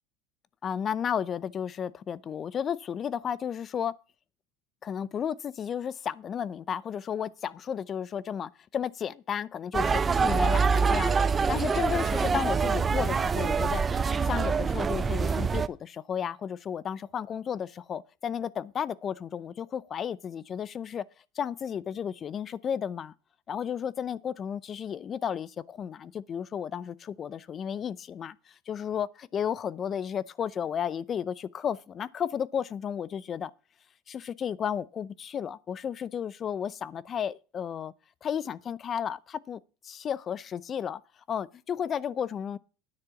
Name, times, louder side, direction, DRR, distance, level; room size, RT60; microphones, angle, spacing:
voice 1, 0.6-3.9 4.8-21.0 21.3-23.1 23.5-33.5 34.1-37.9 38.2-41.0 41.3-42.6, left 8 dB, 35° left, 0.6 m, -33 dB
sound 1, 9.7-15.7, right 5 dB, 25° right, 0.6 m, -25 dB
9.9 x 6.8 x 5.8 m
hypercardioid pair, 90°, 0 cm